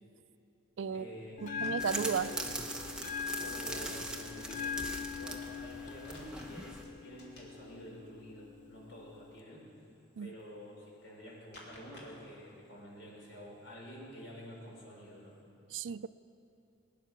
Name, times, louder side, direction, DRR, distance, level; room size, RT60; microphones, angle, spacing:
sound 1, 0.8-15.4, left 1 dB, 60° left, 2.9 m, -61 dB
voice 1, 0.9-2.5 3.4-9.7 10.2-15.4, equal, 85° left, -3 dB, 4.5 m, -49 dB
Bell, 1.4-9.4, left 6 dB, 40° left, 0.5 m, -42 dB
voice 2, 1.4-2.3 10.2-10.3 15.7-16.1, right 6 dB, 75° right, 15 dB, 0.4 m, -34 dB
sound 2, 1.8-6.8, right 2 dB, 5° right, 0.9 m, -41 dB
20.0 x 10.0 x 6.0 m, 2.7 s
head